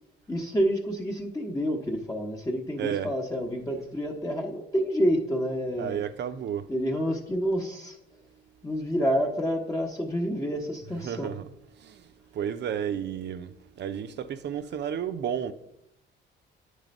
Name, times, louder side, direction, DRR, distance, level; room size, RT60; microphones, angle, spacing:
voice 1, 0.3-6.0 6.7-8.2 8.6-11.3, equal, 15° left, 0.9 m, -28 dB
voice 2, 5.8-6.7 11.0-11.4 11.8-12.0 12.3-15.5, right 9 dB, 60° right, 0.6 m, -32 dB
9.0 x 3.3 x 5.2 m
cardioid pair, 90°, 20 cm